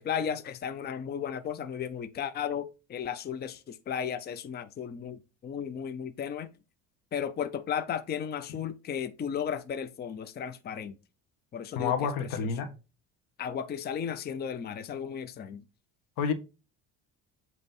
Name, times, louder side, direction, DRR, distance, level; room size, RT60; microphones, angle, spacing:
voice 1, 0.0-6.5 7.1-11.0 11.5-11.9 12.4-12.5 13.4-15.6, left 8 dB, 30° left, 0.6 m, -34 dB
voice 2, 11.7-12.7 16.2-16.3, left 6 dB, 80° left, 1.4 m, -29 dB
8.0 x 3.1 x 5.4 m
cardioid pair, 125°, 33 cm